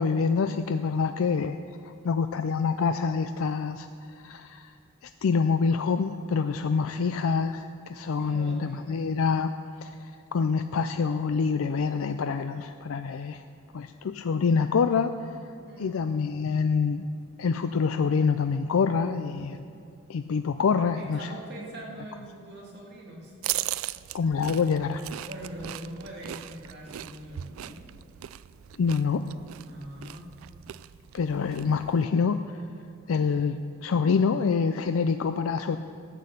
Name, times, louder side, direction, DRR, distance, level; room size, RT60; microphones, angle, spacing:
voice 1, 0.0-1.6 1.8-4.8 5.0-9.5 9.8-13.5 13.7-15.4 15.8-17.0 17.4-19.6 20.1-21.3 24.1-25.0 28.8-29.2 31.1-32.6 33.1-35.8, left 5 dB, 80° left, 9 dB, 0.4 m, -26 dB
voice 2, 8.2-8.8 15.7-16.1 20.9-23.3 25.2-27.8 29.7-30.3, right 1 dB, 50° right, -3 dB, 2.6 m, -42 dB
sound 1, 23.4-32.1, right 13 dB, 80° right, 0.3 m, -38 dB
13.5 x 8.6 x 6.8 m, 2.3 s
head